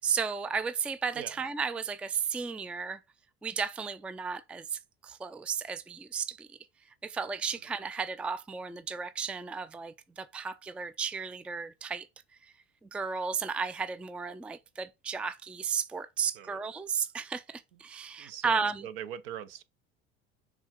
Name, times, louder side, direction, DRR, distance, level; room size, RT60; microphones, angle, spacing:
voice 1, 0.0-3.0 3.4-6.6 7.0-12.1 12.4-12.5 12.8-18.8, right 6 dB, 5° right, 0.4 m, -34 dB
voice 2, 18.2-19.6, right 10 dB, 60° right, 0.8 m, -41 dB
7.1 x 4.9 x 3.6 m
figure-of-eight pair, 65°, 32 cm